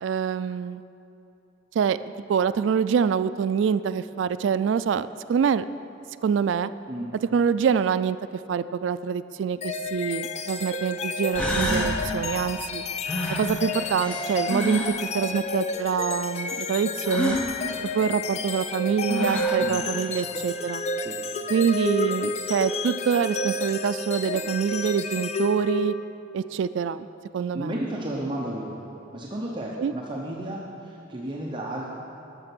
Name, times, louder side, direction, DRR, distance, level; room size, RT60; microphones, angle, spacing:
voice 1, 0.0-0.8 1.8-2.0 2.3-5.7 6.2-6.7 7.3-8.2 8.5-12.8 13.4-17.4 17.9-20.8 21.5-25.9 26.3-27.1 27.3-27.8 29.8-29.9, right 7 dB, 70° right, 14 dB, 0.3 m, -25 dB
sound 1, 9.6-26.3, left 2 dB, 35° left, 0.4 m, -30 dB
sound 2, 9.9-10.0 10.9-11.0 11.3-12.0 13.0-15.0 17.0-17.5 18.7-18.8 19.1-19.7, equal, 5° left, 1.1 m, -28 dB
voice 2, 27.5-28.8 29.1-31.9, right 1 dB, 25° right, -3 dB, 0.8 m, -33 dB
12.0 x 6.7 x 6.1 m, 2.8 s
head